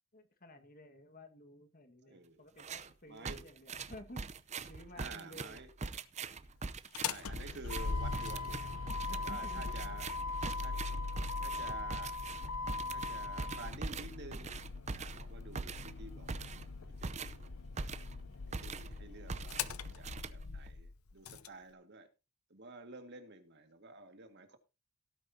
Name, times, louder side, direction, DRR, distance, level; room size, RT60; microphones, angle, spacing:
voice 1, 0.1-4.2 4.7-5.6 9.1-9.6, left 1 dB, 40° left, 8 dB, 1.7 m, -53 dB
voice 2, 2.1-2.4 3.1-3.5 4.9-5.7 7.0-8.6 9.1-10.2 10.6-10.8 11.4-12.2 12.9-14.6 14.9-16.5 17.0-17.5 18.5-22.1 22.5-24.6, right 3 dB, 50° right, 7 dB, 1.9 m, -51 dB
sound 1, 2.6-2.9 3.3-18.2 18.5-19.0 19.3-20.7, right 4 dB, 30° right, 0.7 m, -43 dB
Motor vehicle (road), 6.8-21.5, left 4 dB, 80° left, 0.8 m, -40 dB
17.5 x 9.3 x 2.8 m, 0.29 s
head